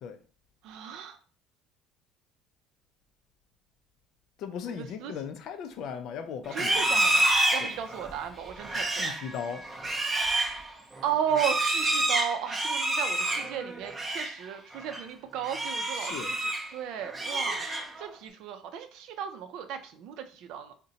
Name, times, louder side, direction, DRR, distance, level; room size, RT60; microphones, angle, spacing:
voice 1, 0.6-1.2 4.7-5.1 6.5-9.1 10.1-10.5 11.0-16.2 16.7-17.6 18.0-20.7, right 9 dB, 70° right, 0.5 m, -35 dB
voice 2, 4.4-7.0 7.6-7.7 8.9-9.6 15.9-16.3, left 7 dB, 60° left, 0.4 m, -38 dB
Livestock farm animals working animals, 6.5-14.4 14.7-15.0 15.4-16.7 17.0-18.1, right 1 dB, 20° right, 0.5 m, -28 dB
2.7 x 2.1 x 3.9 m
cardioid pair, 125°, 0 cm